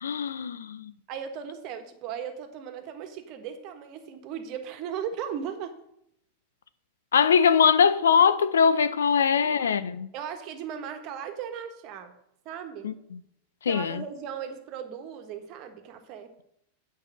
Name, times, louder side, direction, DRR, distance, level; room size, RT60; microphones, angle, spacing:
voice 1, 0.0-0.9 7.1-10.1 12.8-13.2 13.6-14.0, left 6 dB, 75° left, 0.5 m, -22 dB
voice 2, 1.1-5.8 9.4-9.7 10.1-12.1 12.4-12.9 13.7-16.3, right 8 dB, 45° right, 1.5 m, -37 dB
8.8 x 4.8 x 7.4 m
figure-of-eight pair, 95°, 0 cm